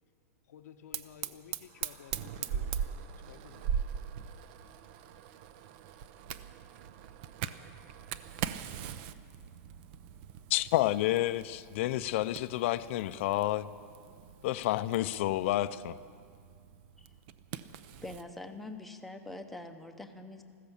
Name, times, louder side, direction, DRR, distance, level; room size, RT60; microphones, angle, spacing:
voice 1, 0.5-3.0 3.2-3.8, left 8 dB, 80° left, 0.8 m, -53 dB
Fire, 0.9-18.3, right 8 dB, 40° right, 0.6 m, -41 dB
voice 2, 10.5-13.7 14.4-16.0, left 15 dB, 50° left, 0.5 m, -29 dB
voice 3, 18.0-20.4, left 2 dB, ahead, 0.8 m, -44 dB
15.0 x 13.5 x 7.2 m
supercardioid pair, 160°, 9 cm